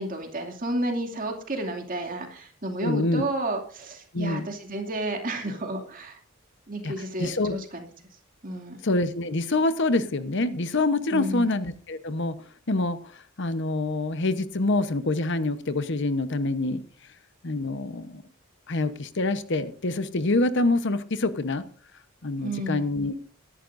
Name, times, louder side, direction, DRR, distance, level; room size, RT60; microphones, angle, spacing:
voice 1, 0.0-6.2 6.7-7.9 8.4-8.8 11.1-11.5 22.4-22.9, right 1 dB, 40° right, 3 dB, 2.6 m, -31 dB
voice 2, 2.8-3.2 4.1-4.5 6.8-7.6 8.8-12.3 12.7-16.8 17.4-18.2 18.7-21.6 22.2-23.1, left 2 dB, 60° left, 11 dB, 1.0 m, -26 dB
22.5 x 11.0 x 2.6 m, 0.42 s
head